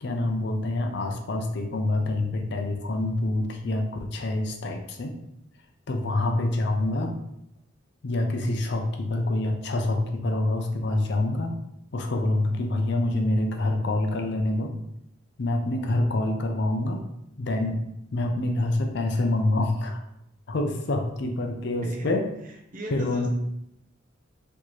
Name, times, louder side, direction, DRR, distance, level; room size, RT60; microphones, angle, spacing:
voice 1, 0.0-5.1 5.9-7.1 8.0-11.5 11.9-14.7 15.4-17.0 17.4-17.8 18.1-20.0 20.5-22.2 22.9-23.3, left 2 dB, 60° left, 4 dB, 0.5 m, -26 dB
voice 2, 22.4-23.3, right 1 dB, 45° right, 0 dB, 0.8 m, -39 dB
4.2 x 2.8 x 3.1 m, 0.79 s
head